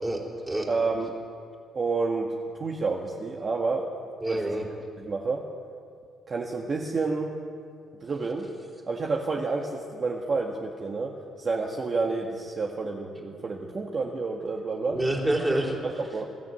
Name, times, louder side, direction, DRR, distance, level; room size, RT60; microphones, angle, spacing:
voice 1, 0.0-0.7 4.2-4.6 14.9-15.8, right 1 dB, 10° right, 0 dB, 3.7 m, -27 dB
voice 2, 0.7-1.1 1.7-2.3 2.6-3.9 4.3-4.4 5.0-5.5 6.3-7.3 8.0-8.4 8.9-15.0 15.8-16.2, right 4 dB, 30° right, 0 dB, 1.7 m, -29 dB
21.5 x 13.5 x 9.4 m, 2.3 s
cardioid pair, 135°, 0 cm